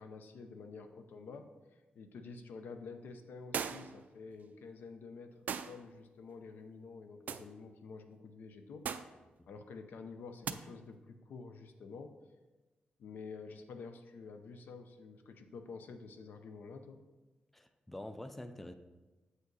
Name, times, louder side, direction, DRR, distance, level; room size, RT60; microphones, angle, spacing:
voice 1, 0.0-1.5 1.9-5.4 5.6-8.9 9.5-12.2 13.0-17.0, left 4 dB, 85° left, 7 dB, 0.6 m, -49 dB
sound 1, 3.5-4.0 5.5-5.8 7.3-7.5 8.8-9.2 10.4-10.6, right 7 dB, 60° right, 0.3 m, -38 dB
voice 2, 17.5-18.7, left 1 dB, 5° left, 9 dB, 0.4 m, -46 dB
7.8 x 5.2 x 4.0 m, 1.2 s
wide cardioid pair, 140°, 3 cm